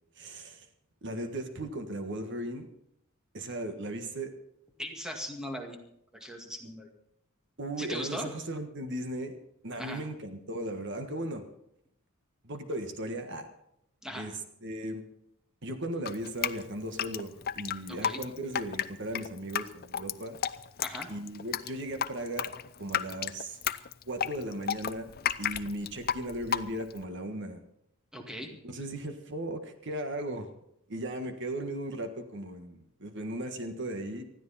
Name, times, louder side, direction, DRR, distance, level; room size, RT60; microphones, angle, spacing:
voice 1, 0.2-0.7 1.0-2.7 3.3-4.3 7.6-9.4 9.6-11.4 12.4-13.5 14.1-15.0 15.6-20.4 21.1-22.5 22.8-23.6 24.0-25.1 25.4-27.6 28.6-30.5 30.9-34.2, right 1 dB, 60° right, 7 dB, 1.6 m, -37 dB
voice 2, 4.8-5.8 6.2-6.9 7.8-8.3 9.8-10.0 14.0-14.3 17.9-18.2 20.8-21.1 28.1-28.5, equal, 5° right, 2 dB, 2.1 m, -38 dB
Drip, 16.1-27.0, left 8 dB, 45° left, 0.6 m, -33 dB
20.0 x 14.0 x 4.2 m, 0.78 s
head